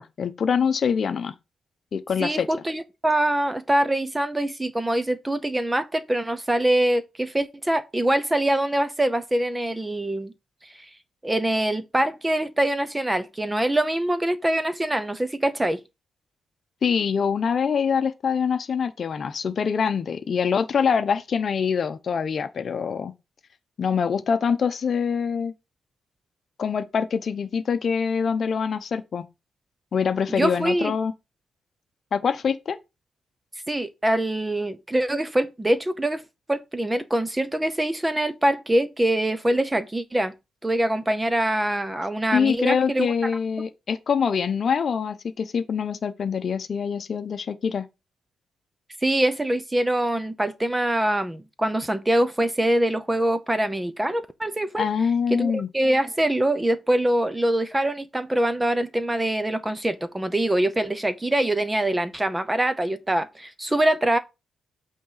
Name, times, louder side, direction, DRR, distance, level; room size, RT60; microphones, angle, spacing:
voice 1, 0.0-1.3 1.9-2.5 16.8-23.1 23.8-25.5 26.6-29.3 29.9-31.1 32.1-32.8 42.3-47.9 54.8-55.7, left 6 dB, 45° left, 0.8 m, -24 dB
voice 2, 2.2-10.3 11.2-15.8 30.3-30.9 33.7-36.2 36.5-40.3 40.6-43.1 49.0-54.9 55.3-64.2, right 1 dB, 10° right, 0.6 m, -24 dB
8.4 x 3.6 x 4.0 m
cardioid pair, 140°, 0 cm